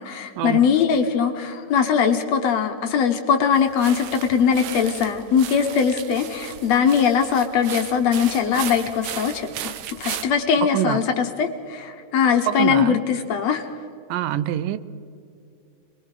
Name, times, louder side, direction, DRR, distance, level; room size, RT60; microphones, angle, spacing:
voice 1, 0.0-13.7, left 7 dB, 65° left, 6 dB, 1.9 m, -21 dB
sound 1, 3.5-10.2, right 10 dB, 70° right, 1.9 m, -35 dB
voice 2, 12.5-13.0 14.1-14.8, right 13 dB, 85° right, 15 dB, 2.3 m, -24 dB
27.0 x 21.5 x 4.9 m, 2.6 s
omnidirectional pair, 3.8 m